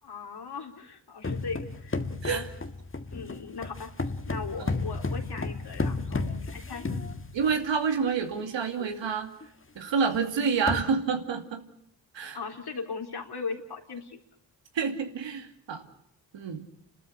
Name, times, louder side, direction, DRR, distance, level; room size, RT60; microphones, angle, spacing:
voice 1, 0.0-2.0 2.2-2.4 3.1-3.9 4.3-6.9 12.3-14.2, left 4 dB, 60° left, 3 dB, 3.9 m, -38 dB
sound 1, 1.2-7.8 8.4-8.5 8.8-9.1 9.4-9.5 10.1-10.2 10.5-10.8, left 3 dB, 30° left, 1.8 m, -33 dB
voice 2, 7.3-9.3 9.8-11.6 12.1-12.4 14.7-15.9 16.3-16.7, right 6 dB, 80° right, 6 dB, 2.5 m, -28 dB
29.5 x 13.0 x 8.6 m, 0.72 s
cardioid pair, 55°, 44 cm